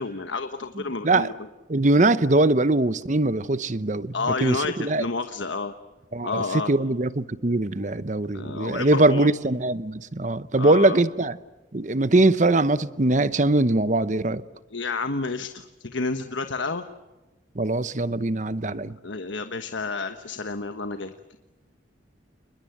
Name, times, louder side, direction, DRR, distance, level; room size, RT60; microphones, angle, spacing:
voice 1, 0.0-1.3 4.1-5.7 6.2-6.7 8.3-9.3 10.5-11.0 14.7-16.9 19.0-21.1, left 4 dB, 80° left, 1.3 m, -30 dB
voice 2, 1.7-4.1 4.4-5.0 6.1-11.4 11.7-14.4 17.6-19.0, right 2 dB, 40° right, 0.9 m, -22 dB
29.5 x 21.0 x 7.9 m
head